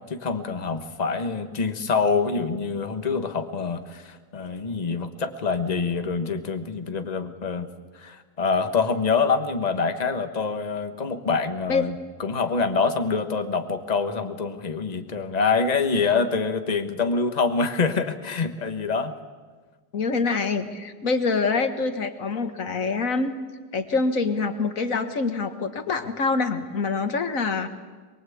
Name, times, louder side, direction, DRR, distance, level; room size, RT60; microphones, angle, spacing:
voice 1, 0.0-7.7 7.9-19.1, left 4 dB, 25° left, 8 dB, 1.1 m, -25 dB
voice 2, 19.9-23.3 23.7-27.7, left 4 dB, 45° left, 8 dB, 1.7 m, -25 dB
23.5 x 22.5 x 8.6 m, 1.4 s
omnidirectional pair, 2.3 m